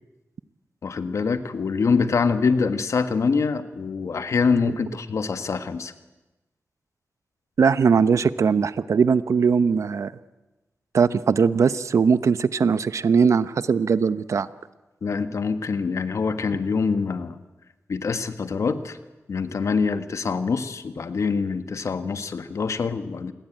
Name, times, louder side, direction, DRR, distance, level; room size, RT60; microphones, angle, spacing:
voice 1, 0.8-5.9 15.0-17.4 17.9-19.0 19.3-23.3, left 5 dB, 80° left, 10 dB, 1.6 m, -25 dB
voice 2, 7.6-10.1 10.9-14.5, right 6 dB, 85° right, 14 dB, 0.9 m, -20 dB
28.0 x 21.5 x 9.1 m, 1.1 s
wide cardioid pair, 95°, 5 cm